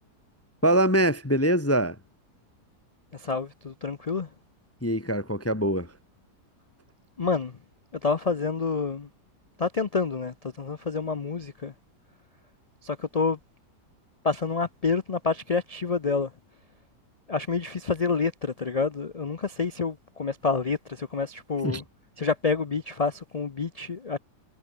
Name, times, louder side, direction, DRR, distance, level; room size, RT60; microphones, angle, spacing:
voice 1, 0.6-2.0 4.8-5.9 21.6-21.8, right 1 dB, 10° left, 0.7 m, -23 dB
voice 2, 3.1-4.3 7.2-7.5 8.0-9.1 9.6-11.7 12.8-13.4 14.2-16.3 17.3-21.8 22.2-24.2, left 4 dB, 65° left, 0.3 m, -28 dB
omnidirectional pair, 1.8 m